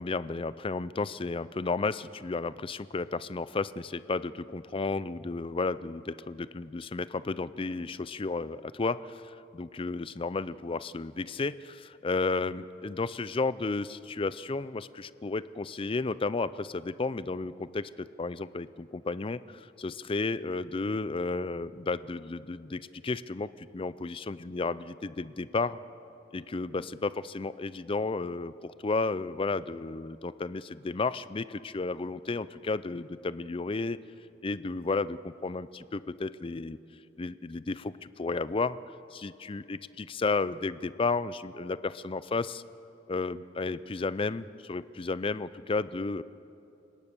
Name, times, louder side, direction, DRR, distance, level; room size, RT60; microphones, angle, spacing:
voice 1, 0.0-25.8 26.3-34.0 34.4-36.8 37.2-38.8 39.1-42.6 43.1-46.2, left 3 dB, 25° left, 16 dB, 0.4 m, -33 dB
29.5 x 18.0 x 6.8 m, 2.9 s
head